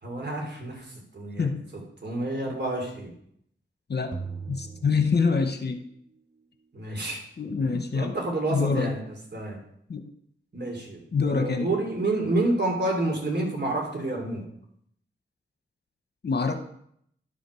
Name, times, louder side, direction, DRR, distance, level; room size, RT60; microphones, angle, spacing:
voice 1, 0.0-3.1 6.7-7.2 7.6-9.0 9.3-9.6 10.5-14.4, right 2 dB, 55° right, 1 dB, 3.3 m, -29 dB
sound 1, 4.1-5.9, right 5 dB, 20° right, 0.6 m, -39 dB
voice 2, 4.5-5.8 7.4-8.1 8.5-9.0 9.9-10.1 11.1-11.7 16.2-16.6, left 5 dB, 50° left, 7 dB, 1.1 m, -25 dB
11.0 x 5.1 x 6.4 m, 0.70 s
cardioid pair, 45°, 21 cm